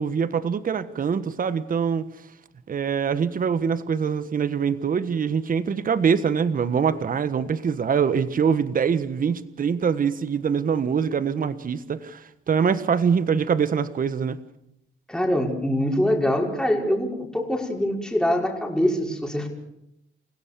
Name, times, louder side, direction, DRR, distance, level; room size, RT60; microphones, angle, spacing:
voice 1, 0.0-2.1 2.7-14.4, right 6 dB, 45° right, 1.4 m, -24 dB
voice 2, 15.1-19.5, equal, 5° left, 5.5 m, -24 dB
29.0 x 16.5 x 7.0 m
cardioid pair, 90°, 20 cm